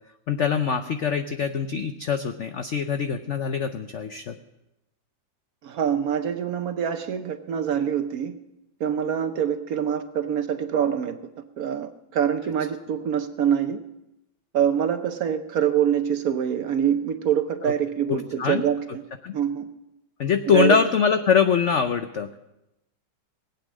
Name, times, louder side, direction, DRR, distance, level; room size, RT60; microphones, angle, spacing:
voice 1, 0.3-4.4 17.6-17.7 18.1-18.7 19.2-19.3 20.2-22.4, left 6 dB, 75° left, 8 dB, 0.6 m, -23 dB
voice 2, 5.6-8.3 8.8-11.2 11.6-13.8 14.5-19.0 19.3-19.7 20.5-20.8, right 9 dB, 65° right, 9 dB, 1.0 m, -25 dB
19.0 x 8.5 x 6.2 m, 0.92 s
omnidirectional pair, 2.0 m